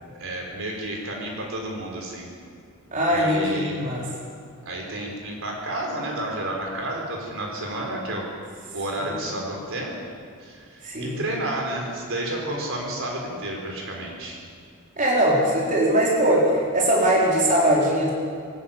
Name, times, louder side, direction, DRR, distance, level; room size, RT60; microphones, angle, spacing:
voice 1, 0.2-2.3 3.1-3.9 4.6-8.2 8.7-9.9 10.4-14.4, right 1 dB, 65° right, 0 dB, 4.5 m, -31 dB
voice 2, 2.9-4.1 9.0-9.2 10.8-11.2 15.0-18.1, right 1 dB, 35° right, -4 dB, 4.4 m, -21 dB
23.0 x 13.0 x 8.8 m, 2.2 s
head